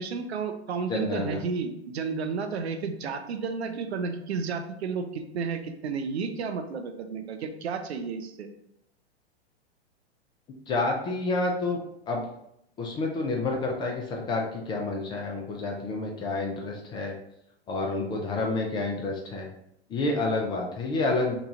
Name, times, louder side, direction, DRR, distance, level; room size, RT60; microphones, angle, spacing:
voice 1, 0.0-8.5, right 5 dB, 75° right, 6 dB, 0.6 m, -32 dB
voice 2, 0.9-1.4 10.7-11.8 12.1-12.2 12.8-17.1 17.7-19.5 19.9-21.4, left 2 dB, 15° left, 0 dB, 0.3 m, -29 dB
3.0 x 2.3 x 3.9 m, 0.76 s
hypercardioid pair, 105°, 32 cm